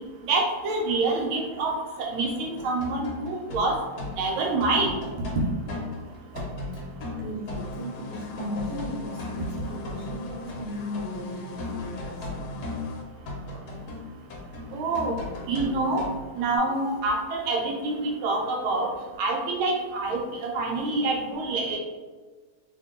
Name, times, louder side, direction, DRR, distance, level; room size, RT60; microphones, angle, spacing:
voice 1, 0.3-1.7 2.0-3.8 4.2-4.9 14.7-15.1 15.5-16.0 16.4-18.9 19.2-21.8, right 3 dB, 80° right, 1 dB, 1.4 m, -26 dB
sound 1, 2.4-10.7 10.9-16.6, left 2 dB, 60° left, 1.1 m, -37 dB
voice 2, 7.2-12.7, left 1 dB, 40° left, -9 dB, 0.4 m, -36 dB
sound 2, 7.5-13.0, left 3 dB, 85° left, 1.5 m, -44 dB
2.9 x 2.9 x 3.6 m, 1.3 s
omnidirectional pair, 2.3 m